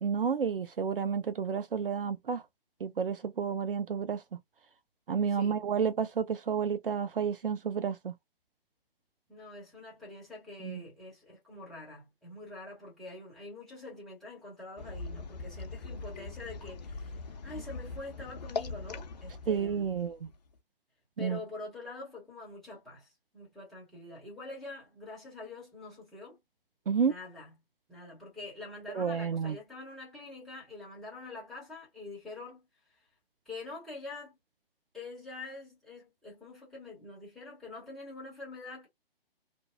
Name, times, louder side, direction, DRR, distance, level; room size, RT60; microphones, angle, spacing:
voice 1, 0.0-2.4 2.8-4.2 5.1-8.1 10.6-10.8 19.5-20.3 21.2-21.4 26.9-27.1 28.9-29.6, right 6 dB, 65° right, 0.5 m, -30 dB
voice 2, 9.3-17.2 17.4-19.9 21.2-26.4 27.0-27.5 27.9-32.7 33.5-34.4 34.9-38.9, left 2 dB, ahead, 0.8 m, -45 dB
sound 1, 14.8-20.6, left 4 dB, 45° left, 0.5 m, -41 dB
2.6 x 2.1 x 2.4 m
figure-of-eight pair, 130°, 30 cm